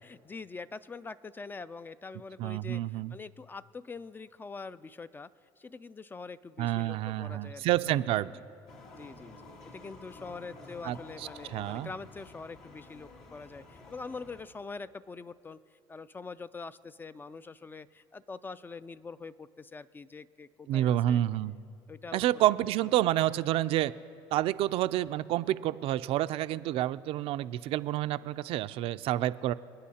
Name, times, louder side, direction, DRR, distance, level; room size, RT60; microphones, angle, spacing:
voice 1, 0.0-5.3 5.6-8.3 8.9-9.3 9.6-15.6 15.9-21.2 21.9-22.3, left 4 dB, 20° left, 15 dB, 0.3 m, -44 dB
voice 2, 2.4-3.1 6.6-8.3 10.8-11.9 20.7-21.5 22.1-23.9 24.3-29.5, right 13 dB, 60° right, 13 dB, 0.4 m, -29 dB
sound 1, 8.7-14.4, left 2 dB, 75° left, 2.1 m, -50 dB
28.0 x 9.5 x 2.8 m, 2.4 s
supercardioid pair, 90°, 11 cm